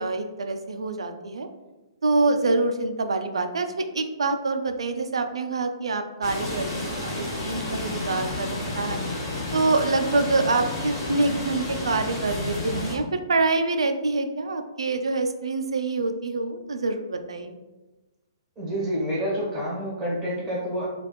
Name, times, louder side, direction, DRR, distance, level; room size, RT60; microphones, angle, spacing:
voice 1, 0.0-1.5 2.0-9.0 9.5-17.5, right 3 dB, 90° right, 7 dB, 0.3 m, -26 dB
sound 1, 6.2-13.0, left 2 dB, 35° left, 1.5 m, -31 dB
voice 2, 18.6-20.9, equal, 15° right, -8 dB, 1.3 m, -28 dB
3.0 x 2.4 x 3.2 m, 1.1 s
hypercardioid pair, 140°, 3 cm